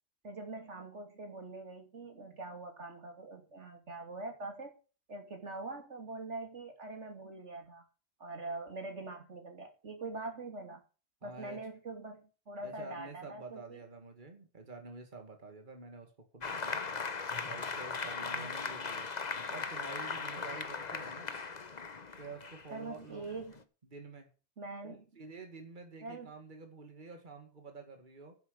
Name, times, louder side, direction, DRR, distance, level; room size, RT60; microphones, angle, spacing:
voice 1, 0.2-4.8 5.1-7.8 8.2-10.8 11.2-13.8 18.2-18.5 20.4-20.7 22.7-23.6 24.6-25.1 26.0-26.3, right 2 dB, 80° right, 4 dB, 3.1 m, -44 dB
voice 2, 11.2-11.6 12.6-16.8 17.4-19.1 19.5-21.3 22.2-23.3 23.8-24.3 24.8-28.4, right 3 dB, 45° right, 5 dB, 2.3 m, -49 dB
Applause, 16.4-23.6, left 4 dB, 40° left, 1.1 m, -39 dB
10.5 x 8.0 x 6.6 m, 0.35 s
omnidirectional pair, 1.2 m